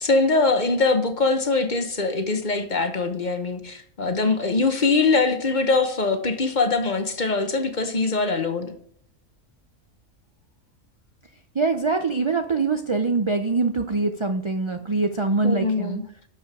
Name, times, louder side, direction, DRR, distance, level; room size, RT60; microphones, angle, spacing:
voice 1, 0.0-8.7 15.4-16.0, left 3 dB, 40° left, 1.0 m, -22 dB
voice 2, 11.5-16.0, right 3 dB, 50° right, 0.3 m, -23 dB
12.5 x 5.0 x 6.0 m
omnidirectional pair, 1.4 m